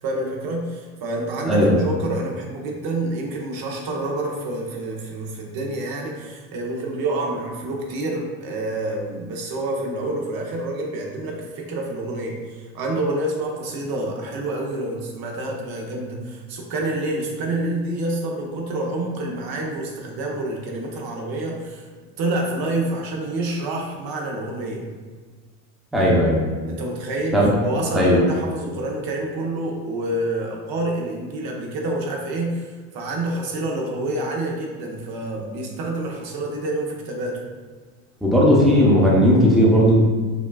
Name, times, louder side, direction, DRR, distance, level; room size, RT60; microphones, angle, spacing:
voice 1, 0.0-21.9 22.2-24.8 26.7-37.4, right 2 dB, 55° right, 0 dB, 0.8 m, -28 dB
voice 2, 25.9-26.4 27.3-27.6 27.9-28.2 38.2-39.9, equal, ahead, -5 dB, 0.7 m, -16 dB
4.9 x 2.3 x 2.2 m, 1.4 s
supercardioid pair, 90°, 44 cm